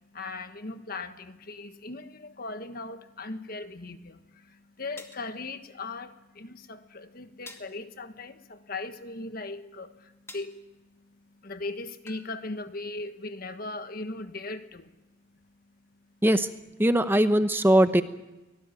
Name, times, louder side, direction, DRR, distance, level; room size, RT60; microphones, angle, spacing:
voice 1, 0.0-15.0, left 3 dB, 50° left, 9 dB, 1.5 m, -39 dB
sound 1, 5.0-5.3 7.5-7.8 10.3-10.6 12.1-12.3, left 2 dB, 15° left, 2.3 m, -46 dB
voice 2, 16.8-18.0, right 1 dB, 10° right, 9 dB, 0.8 m, -20 dB
24.5 x 18.5 x 9.3 m, 1.1 s
head